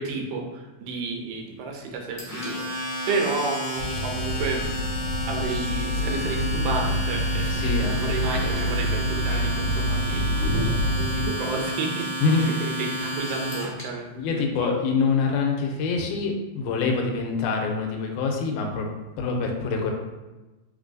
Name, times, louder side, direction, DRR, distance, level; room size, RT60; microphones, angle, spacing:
voice 1, 0.0-4.7 5.3-10.4 10.6-14.8, right 3 dB, 85° right, 2 dB, 2.1 m, -31 dB
Domestic sounds home sounds, 2.2-13.8, equal, 60° left, 0.7 m, -32 dB
sound 1, 3.8-11.3, equal, 65° right, 1.6 m, -27 dB
voice 2, 7.5-8.0 12.2-12.5 14.2-18.9 19.2-19.9, left 4 dB, 85° left, 2 dB, 2.1 m, -25 dB
3.8 x 3.8 x 2.5 m, 1.1 s
omnidirectional pair, 3.5 m